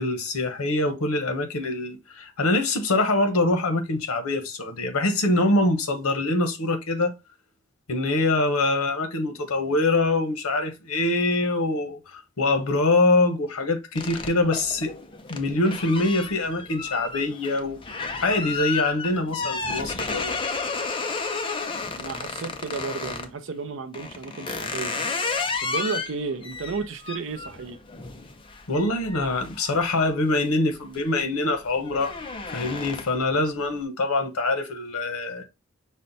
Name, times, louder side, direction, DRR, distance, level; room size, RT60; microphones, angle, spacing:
voice 1, 0.0-7.1 7.9-14.9 15.3-17.8 18.2-20.3 28.7-32.1 32.5-35.4, left 2 dB, 90° left, 0.9 m, -24 dB
sound 1, 13.9-23.3 23.9-30.4 30.8-31.2 31.5-33.3, left 4 dB, 25° left, 0.4 m, -32 dB
voice 2, 22.0-25.2 25.6-27.8, right 4 dB, 60° right, 0.5 m, -33 dB
5.5 x 2.1 x 3.9 m
head